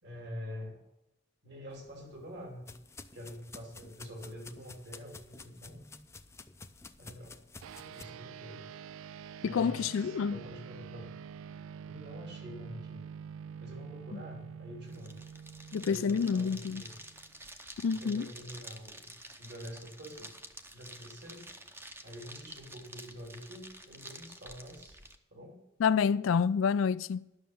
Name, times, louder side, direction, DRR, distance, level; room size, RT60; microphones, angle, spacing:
voice 1, 0.0-0.8 1.4-2.7 3.1-5.9 7.0-7.4 7.8-8.7 9.4-11.1 11.9-13.0 13.6-15.2 15.9-17.0 17.9-20.3 20.7-21.5 22.0-25.0 25.3-25.6, equal, 60° right, 3.1 m, -46 dB
sound 1, 1.7-8.0, left 3 dB, 15° left, 0.5 m, -52 dB
sound 2, 7.6-17.4, right 7 dB, 85° right, 0.3 m, -47 dB
voice 2, 9.4-10.4 15.7-16.8 17.8-18.3 25.8-27.2, left 6 dB, 75° left, 0.4 m, -28 dB
sound 3, 14.8-25.2, right 1 dB, 10° right, 0.8 m, -50 dB
11.0 x 6.4 x 7.1 m
head